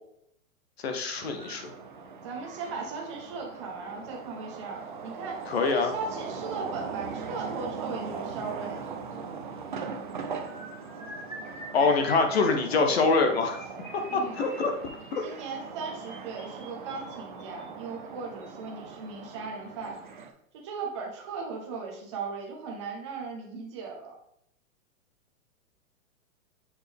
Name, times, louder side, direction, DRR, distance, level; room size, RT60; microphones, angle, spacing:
voice 1, 0.8-1.6 5.5-5.9 11.7-13.6 13.9-14.7 15.1-15.2, left 4 dB, 45° left, 5 dB, 0.7 m, -25 dB
sound 1, 1.2-20.3, right 5 dB, 35° right, 0.4 m, -40 dB
voice 2, 2.2-5.4 5.7-8.8 14.1-14.4 15.2-20.0 20.6-24.1, right 4 dB, 20° right, 0 dB, 0.8 m, -37 dB
sound 2, 10.5-17.6 18.4-18.6 18.9-19.1 19.4-19.6, right 1 dB, 10° left, 0.7 m, -46 dB
7.1 x 4.1 x 3.4 m, 0.72 s
hypercardioid pair, 175°, 43 cm